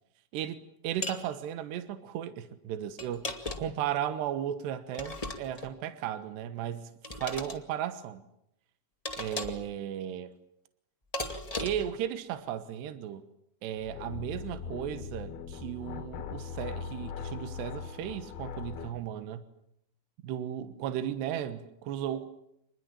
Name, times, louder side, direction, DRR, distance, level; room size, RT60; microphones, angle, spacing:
voice 1, 0.3-6.9 7.2-8.2 9.1-10.4 11.6-13.3 13.6-19.4 20.2-22.3, right 10 dB, 75° right, 3.3 m, -35 dB
sound 1, 1.0-1.2 3.0-3.8 4.9-5.7 7.0-7.6 9.0-9.7 11.1-11.9, left 2 dB, 20° left, 0.8 m, -37 dB
sound 2, 13.8-19.0, left 6 dB, 70° left, 3.4 m, -40 dB
27.0 x 21.0 x 8.8 m
omnidirectional pair, 5.0 m